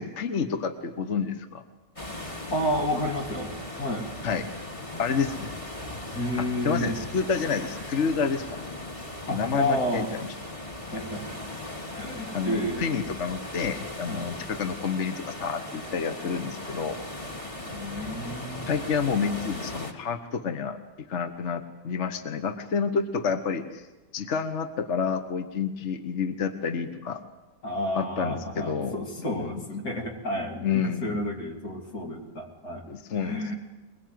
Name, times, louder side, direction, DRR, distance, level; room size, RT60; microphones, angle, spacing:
voice 1, 0.0-1.6 4.2-4.5 5.0-5.6 6.4-8.5 9.3-10.3 12.3-17.0 18.0-18.1 18.7-20.8 21.1-23.8 24.1-27.2 27.9-29.6 30.6-31.1 32.9-33.5, left 6 dB, 50° left, 9 dB, 1.5 m, -29 dB
sound 1, 2.0-19.9, left 1 dB, 20° left, 2.4 m, -38 dB
voice 2, 2.5-4.1 6.1-7.0 9.3-10.1 10.9-11.4 11.9-12.9 14.1-14.3 17.6-18.7 27.6-30.7 31.0-32.8 33.1-33.6, equal, 85° left, 2 dB, 3.8 m, -31 dB
22.5 x 22.0 x 9.4 m, 1.1 s
omnidirectional pair, 1.6 m